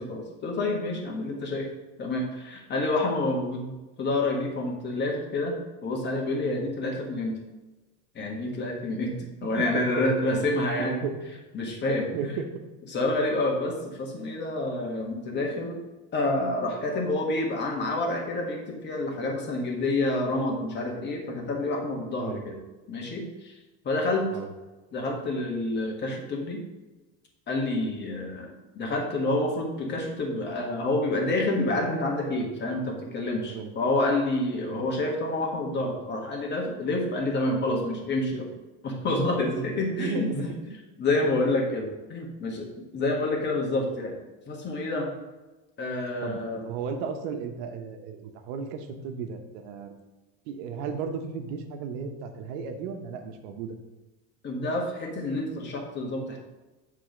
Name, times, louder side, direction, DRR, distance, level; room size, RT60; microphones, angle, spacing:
voice 1, 0.0-1.7 2.0-3.7 4.0-7.4 8.1-11.0 11.5-12.1 12.9-15.8 16.1-22.6 22.9-23.5 23.8-24.3 24.9-26.6 27.5-38.5 38.8-44.2 44.5-45.1 45.8-46.7 54.4-56.4, left 2 dB, 30° left, 1 dB, 1.5 m, -28 dB
voice 2, 9.2-10.1 10.8-11.2 11.9-12.5 22.2-22.4 24.3-24.5 33.5-33.7 34.6-34.8 39.9-40.3 46.2-49.9 50.5-53.8, right 6 dB, 85° right, 5 dB, 1.1 m, -35 dB
7.8 x 3.7 x 5.1 m, 1.1 s
cardioid pair, 145°, 35 cm